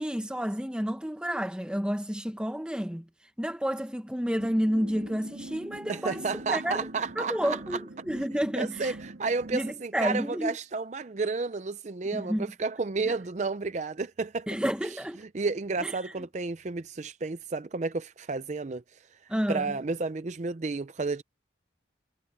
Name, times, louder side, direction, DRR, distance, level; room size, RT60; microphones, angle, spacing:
voice 1, 0.0-3.0 3.4-6.2 6.5-6.8 7.2-7.8 8.1-9.0 9.5-10.6 12.1-12.5 14.5-15.2 15.8-15.9 19.3-19.7, equal, 5° right, 0.9 m, -30 dB
sound 1, 4.4-9.7, right 1 dB, 70° right, 2.0 m, -43 dB
voice 2, 5.9-7.8 8.6-14.5 14.8-18.8 19.5-21.2, right 4 dB, 40° right, 0.5 m, -32 dB
head